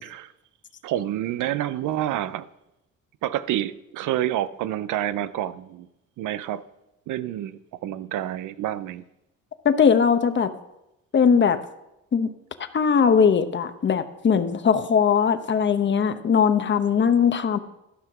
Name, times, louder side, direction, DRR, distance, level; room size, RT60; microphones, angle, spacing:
voice 1, 0.0-0.3 0.8-2.4 3.2-5.9 6.2-6.6 7.1-9.0, right 12 dB, 80° right, 0.6 m, -28 dB
voice 2, 9.6-10.5 11.1-11.6 12.1-12.3 12.7-17.6, left 6 dB, 40° left, 0.9 m, -20 dB
12.5 x 5.8 x 6.0 m
cardioid pair, 90°, 30 cm